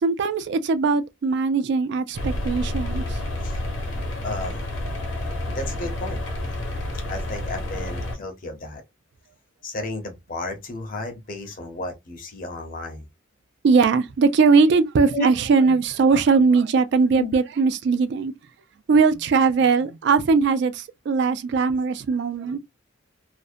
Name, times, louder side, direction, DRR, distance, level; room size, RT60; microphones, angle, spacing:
voice 1, 0.0-3.2 13.6-18.3 18.9-22.6, right 4 dB, 60° right, 0.3 m, -20 dB
sound 1, 2.1-8.2, left 1 dB, 75° left, 0.8 m, -29 dB
voice 2, 4.2-4.8 5.5-6.2 7.1-8.8 9.6-13.1 15.1-15.3 17.1-17.3, left 2 dB, 45° left, 0.7 m, -32 dB
2.5 x 2.1 x 2.4 m
head